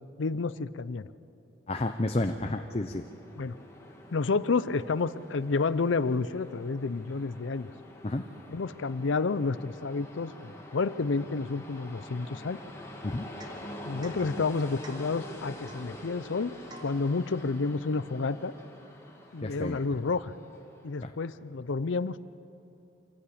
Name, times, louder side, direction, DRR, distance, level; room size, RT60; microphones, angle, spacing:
voice 1, 0.2-1.1 3.4-3.6 4.1-7.7 8.5-12.6 13.8-16.5 16.8-18.5 19.3-20.3 20.8-22.2, left 4 dB, 75° left, 16 dB, 0.6 m, -30 dB
voice 2, 1.7-3.0 8.0-8.3 13.0-13.3 19.4-19.8 21.0-21.1, left 2 dB, 30° left, 6 dB, 0.6 m, -30 dB
Train, 2.4-20.9, left 1 dB, 15° left, 2.0 m, -46 dB
Domestic sounds home sounds / Chink clink / Drip, 13.4-13.7 14.0-14.3 14.8-15.1 15.7-15.9 16.7-17.0, right 2 dB, 20° right, 1.4 m, -48 dB
25.5 x 14.5 x 8.6 m, 2.9 s
head